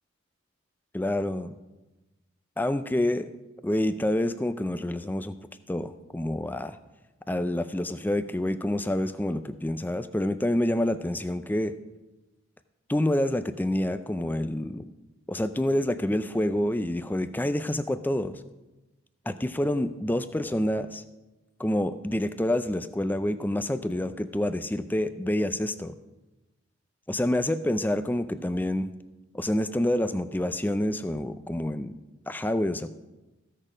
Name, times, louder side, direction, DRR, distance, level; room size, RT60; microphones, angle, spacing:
voice 1, 0.9-1.5 2.6-3.3 3.6-5.3 5.7-6.8 7.3-11.7 12.9-14.9 15.3-18.4 19.3-21.0 21.6-25.9 27.1-28.9 29.3-32.0 32.3-32.9, left 1 dB, 10° left, 11 dB, 0.4 m, -27 dB
15.0 x 6.6 x 5.0 m, 1.1 s
head